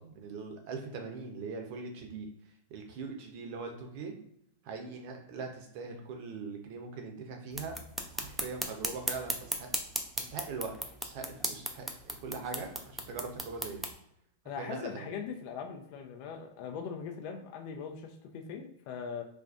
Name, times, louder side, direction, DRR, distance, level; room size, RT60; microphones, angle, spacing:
voice 1, 0.0-2.3 2.7-4.1 4.7-7.8 8.1-9.7 10.2-10.7 11.0-11.9 12.2-13.8 14.6-15.1, right 4 dB, 55° right, 3 dB, 0.6 m, -41 dB
sound 1, 7.5-13.9, right 1 dB, 5° right, 0.4 m, -37 dB
voice 2, 14.4-19.2, left 6 dB, 50° left, 3 dB, 0.5 m, -40 dB
2.5 x 2.2 x 2.4 m, 0.73 s
hypercardioid pair, 100°, 0 cm